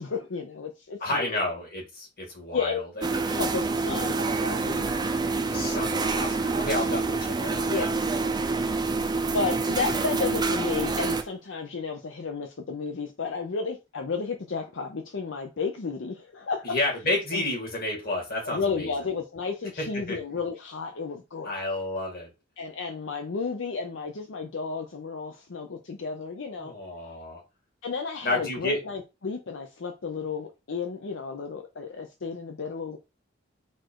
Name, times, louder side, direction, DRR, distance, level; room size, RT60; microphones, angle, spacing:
voice 1, 0.0-1.4 2.5-2.8 3.3-5.1 5.5-5.7 6.8-7.0 7.7-7.8 8.2-8.3 9.3-16.7 17.3-17.4 18.4-21.5 22.6-26.7 27.8-33.0, left 4 dB, 75° left, 0.6 m, -32 dB
voice 2, 1.0-3.4 5.5-7.9 16.6-18.9 19.8-20.2 21.4-22.3 26.6-27.4 28.2-28.8, left 2 dB, 50° left, 2.1 m, -31 dB
sound 1, 3.0-11.3, right 3 dB, 20° right, 0.5 m, -27 dB
4.3 x 2.5 x 4.5 m
head